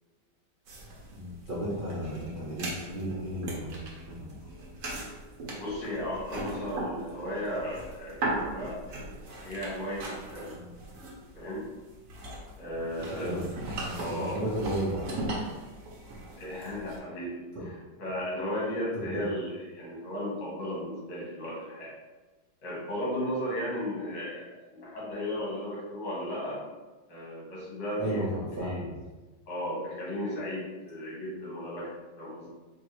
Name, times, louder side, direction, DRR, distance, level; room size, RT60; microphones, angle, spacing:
sound 1, 0.7-17.0, right 2 dB, 60° right, 0.9 m, -39 dB
voice 1, 1.1-3.8 4.1-4.4 10.5-10.7 13.2-13.5 13.8-15.3 17.5-17.7 18.9-19.2 28.0-29.0, right 1 dB, 75° right, -8 dB, 0.4 m, -34 dB
voice 2, 5.6-8.8 9.4-10.6 11.4-11.7 12.6-13.3 14.0-14.4 16.4-17.5 18.0-21.9 22.6-26.6 27.1-28.2 28.5-28.8 29.5-32.5, left 1 dB, 65° left, -6 dB, 2.2 m, -35 dB
4.4 x 2.9 x 3.1 m, 1.2 s
omnidirectional pair, 2.3 m